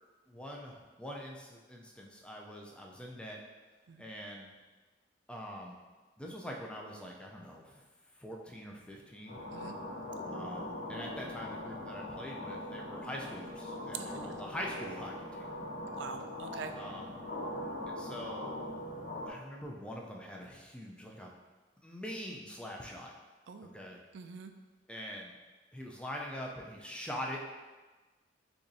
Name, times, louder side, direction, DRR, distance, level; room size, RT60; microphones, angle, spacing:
voice 1, 0.3-3.4 4.0-4.5 5.3-5.8 6.2-7.8 8.2-9.4 10.3-15.5 16.8-17.1 17.9-18.5 19.3-21.3 21.8-23.1 23.6-24.0 24.9-25.3 25.7-27.4, equal, 5° left, -1 dB, 0.4 m, -43 dB
sound 1, 9.3-19.3, left 1 dB, 45° left, 1.3 m, -41 dB
voice 2, 13.9-14.3 16.0-16.7 23.5-23.7 24.1-24.5, right 6 dB, 80° right, 7 dB, 0.4 m, -43 dB
6.8 x 2.6 x 2.7 m, 1.3 s
head